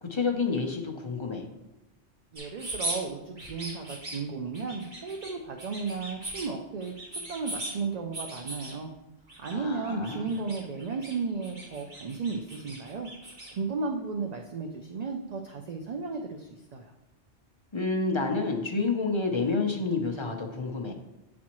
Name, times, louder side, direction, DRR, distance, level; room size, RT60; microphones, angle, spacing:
voice 1, 0.0-1.5 9.5-10.3 17.7-20.9, left 4 dB, 30° left, 2 dB, 0.6 m, -29 dB
sound 1, 2.3-3.0 3.3-4.2 4.5-5.3 5.6-6.5 6.8-7.7 8.1-8.7 9.3-9.5 9.8-11.1 11.4-13.5, right 2 dB, 40° right, 1.6 m, -38 dB
voice 2, 2.3-8.9 9.4-13.1 13.5-16.9, right 4 dB, 60° right, 3 dB, 0.4 m, -34 dB
8.3 x 4.2 x 3.0 m, 0.94 s
omnidirectional pair, 1.2 m